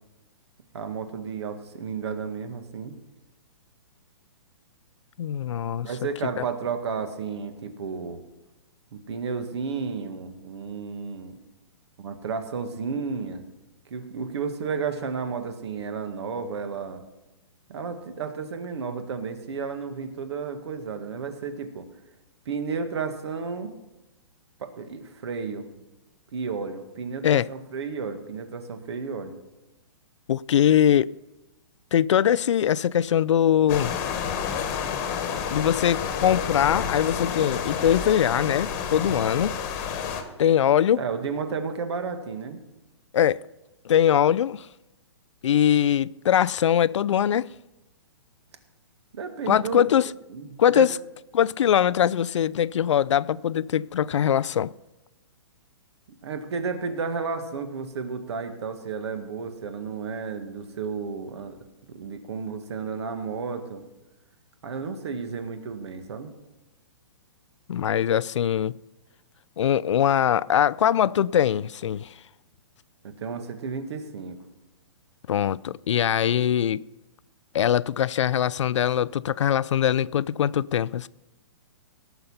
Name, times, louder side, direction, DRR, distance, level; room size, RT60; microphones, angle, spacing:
voice 1, 0.7-2.9 5.8-8.2 8.9-11.4 12.0-13.4 13.9-17.0 17.7-21.9 22.5-23.7 24.6-25.7 26.3-29.4 41.0-42.6 49.1-49.9 50.3-50.9 56.2-61.6 61.9-63.8 64.6-66.3 73.0-74.4, right 5 dB, 65° right, 1.9 m, -32 dB
voice 2, 5.2-5.9 6.4-6.5 27.2-27.5 30.3-31.1 31.9-34.0 35.5-39.5 39.9-40.1 40.4-41.0 43.1-43.4 43.8-44.7 45.4-47.5 49.5-50.1 50.6-50.9 51.3-54.7 67.7-68.7 69.6-72.1 75.3-76.8 77.5-81.1, left 10 dB, 80° left, 0.4 m, -22 dB
sound 1, 33.7-40.2, left 7 dB, 25° left, 1.4 m, -29 dB
17.0 x 6.9 x 5.6 m
hypercardioid pair, 160°, 15 cm